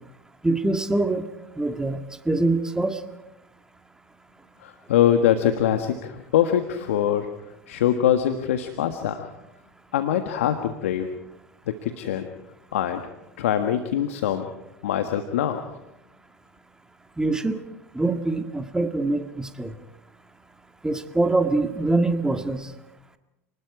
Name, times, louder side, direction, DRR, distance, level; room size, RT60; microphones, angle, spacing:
voice 1, 0.4-1.3 1.6-3.0 17.2-17.6 17.9-19.7 20.8-22.7, right 2 dB, 10° right, 7 dB, 1.9 m, -24 dB
voice 2, 4.6-7.3 7.7-9.3 9.9-11.1 11.7-12.3 12.7-13.0 13.4-14.5 14.8-15.6, left 10 dB, 75° left, 7 dB, 1.5 m, -23 dB
29.5 x 20.0 x 4.9 m, 0.90 s
hypercardioid pair, 80°, 7 cm